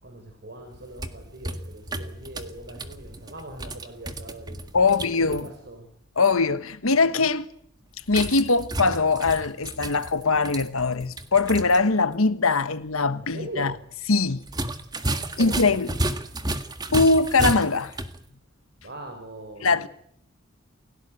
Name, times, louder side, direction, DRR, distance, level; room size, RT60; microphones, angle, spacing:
voice 1, 0.0-5.8 13.2-13.8 15.3-15.7 18.8-19.9, right 1 dB, 50° right, 4.9 m, -41 dB
sound 1, 0.7-5.5 8.1-11.8 12.1-12.2 14.4-18.2, right 1 dB, 20° right, 1.7 m, -32 dB
voice 2, 4.7-5.5 6.2-7.5 8.1-13.7 14.1-14.4 15.4-15.9 16.9-17.9 19.6-19.9, left 3 dB, 80° left, 1.4 m, -22 dB
30.0 x 17.0 x 9.3 m
head